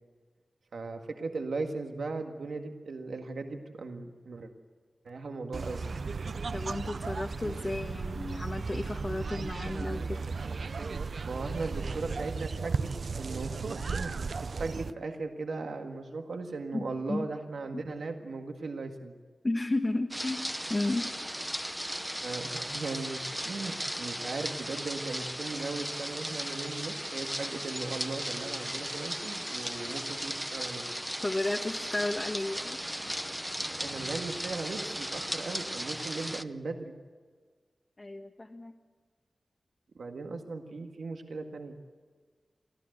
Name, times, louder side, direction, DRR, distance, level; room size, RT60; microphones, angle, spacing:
voice 1, 0.7-4.5 5.0-5.8 11.2-12.9 13.2-14.1 14.6-19.1 22.2-30.8 33.8-36.9 39.9-41.8, right 3 dB, 85° right, 4 dB, 1.8 m, -38 dB
sound 1, 5.5-14.9, right 4 dB, 65° right, 0.6 m, -35 dB
voice 2, 6.5-10.2 16.7-17.2 19.4-20.4 20.7-21.1 31.2-32.8 38.0-38.7, left 2 dB, 30° left, 2 dB, 1.3 m, -33 dB
sound 2, 20.1-36.4, equal, 5° right, 0.7 m, -36 dB
25.0 x 15.0 x 8.0 m, 1.6 s
wide cardioid pair, 90°, 0 cm